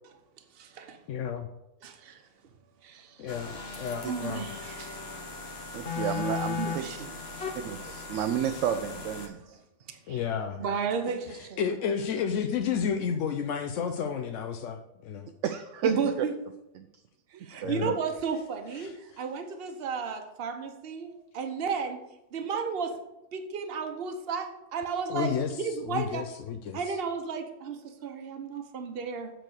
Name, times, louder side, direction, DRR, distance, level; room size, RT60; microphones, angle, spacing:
voice 1, 0.5-1.0 1.8-2.2 2.8-3.3 4.0-5.0 6.6-7.5 8.2-8.3 9.4-9.5 9.9-10.2 10.6-11.6 15.8-16.3 17.4-22.0 22.3-22.9 23.3-26.3 26.7-29.3, right 5 dB, 55° right, 5 dB, 1.1 m, -33 dB
voice 2, 1.1-1.5 3.2-4.4 10.1-10.6 11.4-15.3 17.6-17.9 18.8-18.9 25.1-25.5 25.8-26.9, left 7 dB, 85° left, 6 dB, 1.0 m, -31 dB
sound 1, 3.3-9.3, left 5 dB, 55° left, 1.4 m, -37 dB
voice 3, 5.7-6.8 7.6-9.6 15.4-15.9 16.8-16.9 17.3-17.7, right 9 dB, 85° right, 7 dB, 0.9 m, -31 dB
7.9 x 4.5 x 6.3 m, 0.91 s
omnidirectional pair, 1.3 m